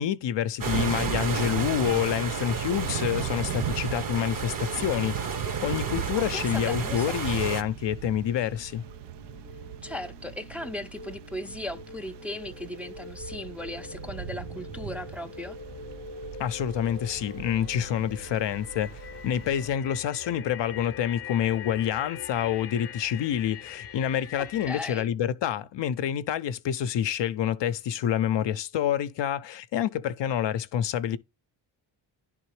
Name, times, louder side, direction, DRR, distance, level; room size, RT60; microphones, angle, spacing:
voice 1, 0.0-8.8 16.4-31.2, left 10 dB, 65° left, 0.6 m, -28 dB
sound 1, 0.6-7.6, right 5 dB, 45° right, 1.0 m, -32 dB
Thunder / Rain, 0.7-19.8, right 11 dB, 60° right, 0.5 m, -38 dB
voice 2, 6.1-7.6 9.8-15.6 24.6-25.1, left 1 dB, 5° right, 0.5 m, -37 dB
sound 2, 7.4-24.8, left 5 dB, 30° left, 0.7 m, -44 dB
10.0 x 3.7 x 3.1 m
cardioid pair, 75°, 47 cm